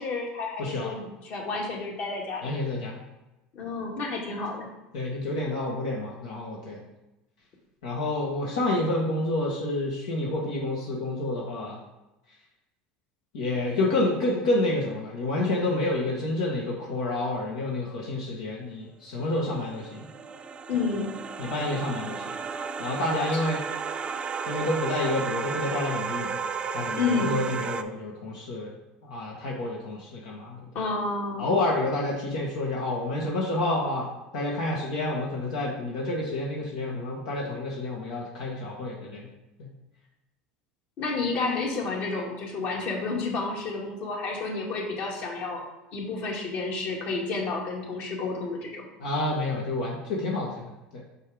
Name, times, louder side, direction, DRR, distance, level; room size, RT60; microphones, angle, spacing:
voice 1, 0.0-2.5 3.5-4.7 20.7-21.1 26.9-27.4 30.7-31.5 41.0-45.6 45.9-48.9, left 3 dB, 60° left, -1 dB, 2.2 m, -30 dB
voice 2, 0.6-0.9 2.4-3.0 4.9-6.8 7.8-11.8 13.3-20.1 21.4-22.3 22.8-23.6 24.5-26.3 26.7-28.7 29.0-30.6 31.4-34.1 34.3-39.3 39.6-39.7 49.0-51.0, left 2 dB, 85° left, -3 dB, 1.6 m, -29 dB
sound 1, 19.4-27.8, right 5 dB, 25° right, 0.5 m, -33 dB
5.5 x 5.5 x 4.9 m, 0.98 s
supercardioid pair, 110°, 4 cm